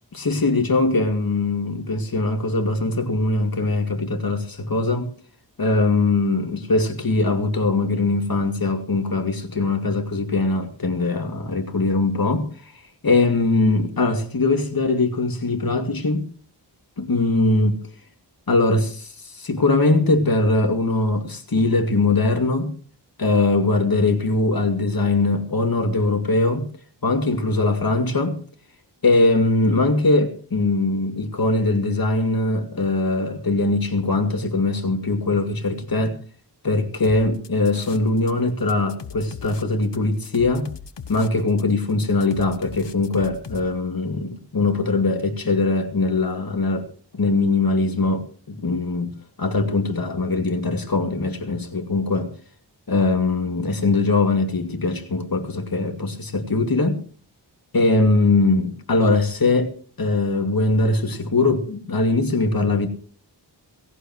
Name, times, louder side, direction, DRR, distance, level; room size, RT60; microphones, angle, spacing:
voice 1, 0.1-5.1 5.6-12.5 13.0-16.3 17.0-17.8 18.5-22.7 23.2-26.7 27.0-28.4 29.0-36.2 36.6-40.7 41.1-46.9 47.1-49.1 49.4-52.3 52.9-57.0 57.7-59.7 60.0-62.9, left 2 dB, 55° left, 2.5 m, -21 dB
sound 1, 37.0-38.3 38.6-43.7, left 6 dB, 75° left, 1.1 m, -39 dB
18.0 x 16.5 x 3.2 m
wide cardioid pair, 85°, 43 cm